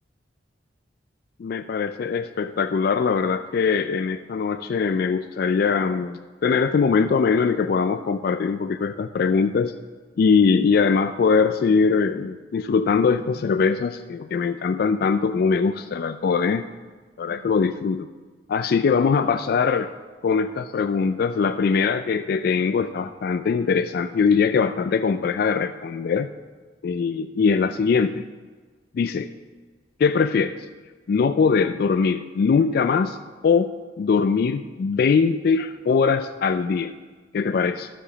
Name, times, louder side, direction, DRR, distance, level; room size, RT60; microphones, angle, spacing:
voice 1, 1.4-9.7 10.2-16.7 17.2-18.1 18.5-19.9 20.2-26.3 26.8-28.2 28.9-29.3 30.0-30.7 31.1-33.2 33.4-33.7 34.0-36.9 37.3-37.9, left 5 dB, 55° left, 10 dB, 0.3 m, -21 dB
11.0 x 4.9 x 6.7 m, 1.4 s
head